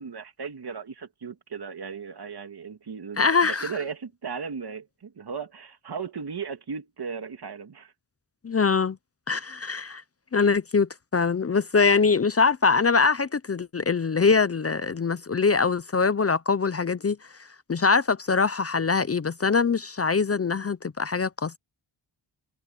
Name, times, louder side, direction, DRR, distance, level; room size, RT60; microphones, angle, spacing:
voice 1, 0.0-7.9, right 6 dB, 60° right, 2.1 m, -36 dB
voice 2, 3.2-3.7 8.4-9.0 9.3-10.0 10.3-17.2 17.7-21.6, left 4 dB, 35° left, 0.6 m, -23 dB
wide cardioid pair, 125°, 43 cm